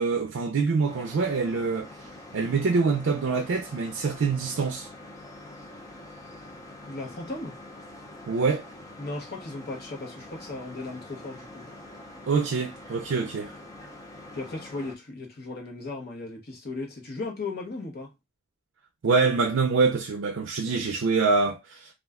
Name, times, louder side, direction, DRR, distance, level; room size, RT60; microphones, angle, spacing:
voice 1, 0.0-1.9 2.3-4.9 8.3-8.6 12.3-13.5 19.0-21.9, right 4 dB, 80° right, 0.4 m, -25 dB
sound 1, 0.9-15.0, left 1 dB, 15° left, 0.5 m, -45 dB
voice 2, 6.9-7.6 9.0-11.7 14.3-18.1, left 3 dB, 55° left, 0.9 m, -36 dB
2.4 x 2.1 x 3.5 m
head